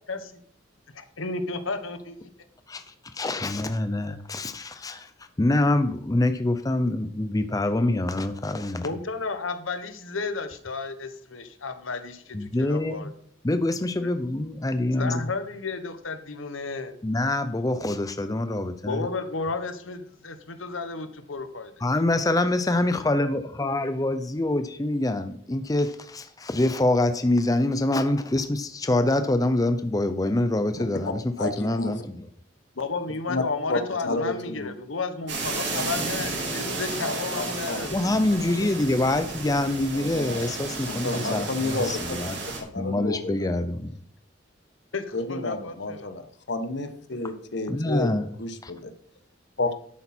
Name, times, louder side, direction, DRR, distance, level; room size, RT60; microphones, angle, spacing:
voice 1, 0.1-0.4 0.9-2.3 8.8-13.1 14.0-14.1 15.0-16.9 18.9-21.7 32.8-38.1 44.9-46.1, left 3 dB, 80° left, 10 dB, 1.2 m, -33 dB
voice 2, 2.7-5.1 5.4-8.9 12.3-13.1 13.4-15.3 17.0-19.1 21.8-32.2 37.9-42.4 42.8-43.9 47.7-48.3 48.6-48.7, left 2 dB, 20° left, 9 dB, 0.5 m, -25 dB
voice 3, 30.7-32.0 33.3-33.4 33.7-34.7 37.1-37.8 39.9-40.5 40.8-42.2 42.7-43.5 45.1-48.9 49.6-49.7, left 2 dB, 60° left, 8 dB, 1.2 m, -31 dB
sound 1, 35.3-42.6, right 3 dB, 60° right, 3.6 m, -33 dB
11.0 x 8.5 x 4.4 m, 0.64 s
head